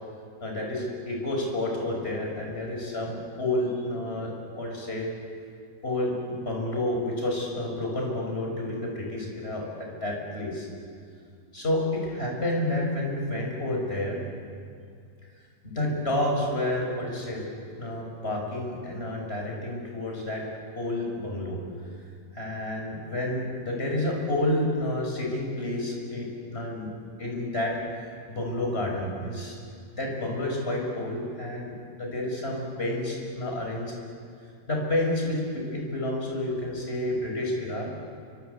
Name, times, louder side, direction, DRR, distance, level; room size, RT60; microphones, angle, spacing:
voice 1, 0.4-5.1 5.8-10.7 11.5-14.2 15.6-17.5 17.8-20.4 20.8-21.6 22.3-26.9 27.2-27.8 28.3-29.6 30.0-33.9 34.7-37.9, left 1 dB, 35° left, 0 dB, 6.5 m, -30 dB
29.0 x 24.5 x 8.2 m, 2.2 s
omnidirectional pair, 2.0 m